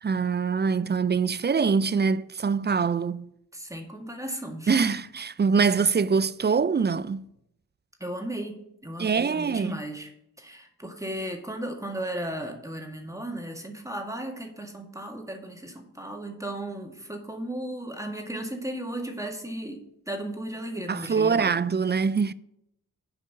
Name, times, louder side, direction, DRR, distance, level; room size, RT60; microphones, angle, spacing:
voice 1, 0.0-3.3 4.7-7.2 9.0-9.8 20.9-22.3, right 5 dB, 30° right, 0.4 m, -24 dB
voice 2, 3.5-4.9 8.0-10.1 10.4-21.6, right 1 dB, 10° right, 1.8 m, -35 dB
7.9 x 4.9 x 7.2 m
cardioid pair, 45°, 37 cm